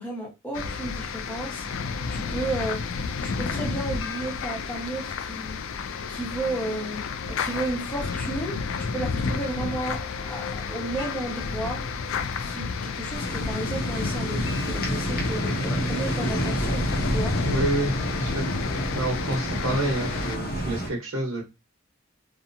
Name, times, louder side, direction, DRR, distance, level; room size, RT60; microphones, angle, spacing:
voice 1, 0.0-1.6 2.1-2.8 3.2-5.6 6.1-11.8 12.4-17.3, right 2 dB, 10° left, -4 dB, 1.0 m, -33 dB
sound 1, 0.5-20.4, left 5 dB, 65° left, 0.4 m, -31 dB
sound 2, 13.1-20.9, right 1 dB, 45° left, 0.8 m, -29 dB
voice 2, 17.4-18.5 18.9-21.4, right 1 dB, 70° right, 0 dB, 0.9 m, -28 dB
2.8 x 2.2 x 2.5 m, 0.25 s
head